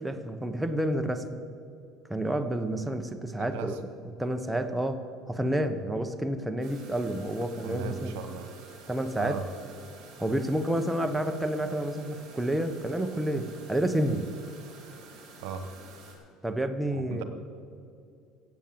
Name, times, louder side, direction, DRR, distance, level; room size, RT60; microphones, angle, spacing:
voice 1, 0.0-1.4 2.1-3.7 4.2-8.1 8.9-9.4 10.2-14.3 16.4-17.2, right 1 dB, 5° right, 7 dB, 0.9 m, -29 dB
voice 2, 3.4-3.8 7.6-8.5 9.2-9.4 15.4-15.7 16.9-17.2, right 7 dB, 90° right, 9 dB, 1.3 m, -36 dB
sound 1, 6.6-16.1, right 4 dB, 55° right, 4.1 m, -50 dB
15.0 x 8.3 x 7.5 m, 2.5 s
cardioid pair, 130°, 0 cm